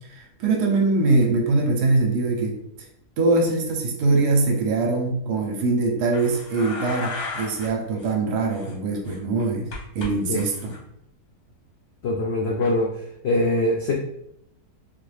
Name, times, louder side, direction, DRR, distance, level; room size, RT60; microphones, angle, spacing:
voice 1, 0.1-2.6 3.2-9.7 9.9-10.7, right 3 dB, 85° right, 1 dB, 1.3 m, -22 dB
sound 1, 6.1-7.7 7.9-8.1 8.5-10.1 10.4-10.8 12.6-12.7, left 3 dB, 50° left, 0.8 m, -35 dB
voice 2, 12.0-12.9 13.2-13.9, left 2 dB, 85° left, 0 dB, 0.5 m, -22 dB
3.8 x 2.1 x 3.2 m, 0.75 s
omnidirectional pair, 1.7 m